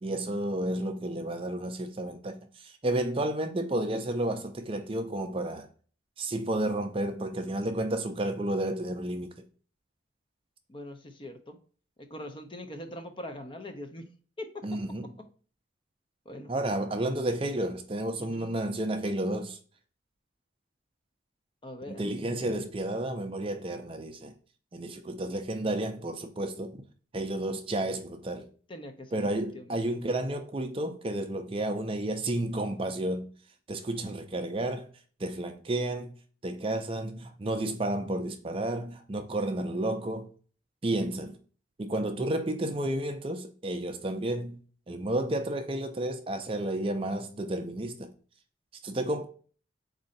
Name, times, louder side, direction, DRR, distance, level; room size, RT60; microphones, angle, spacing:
voice 1, 0.0-5.7 6.2-9.4 14.6-15.1 16.5-19.6 21.9-24.4 24.7-26.8 27.1-28.5 29.1-33.3 33.7-34.9 35.2-36.2 36.4-40.3 40.8-41.4 41.8-44.6 44.9-48.1 48.8-49.3, right 1 dB, 30° right, 0.4 m, -31 dB
voice 2, 10.7-11.6 12.1-14.0 14.4-14.6 16.3-16.5 18.2-18.5 21.6-22.0 28.7-29.8, left 1 dB, 25° left, 0.6 m, -42 dB
4.2 x 2.6 x 3.8 m
head